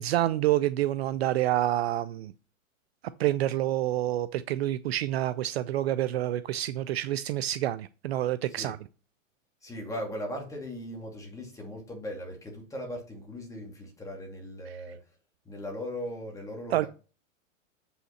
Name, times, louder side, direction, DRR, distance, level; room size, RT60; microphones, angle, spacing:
voice 1, 0.0-2.3 3.2-8.8 16.7-16.9, right 14 dB, 50° right, 0.5 m, -28 dB
voice 2, 9.6-15.1 15.4-16.9, equal, 10° left, 2.4 m, -38 dB
7.2 x 5.6 x 4.2 m
hypercardioid pair, 140°, 39 cm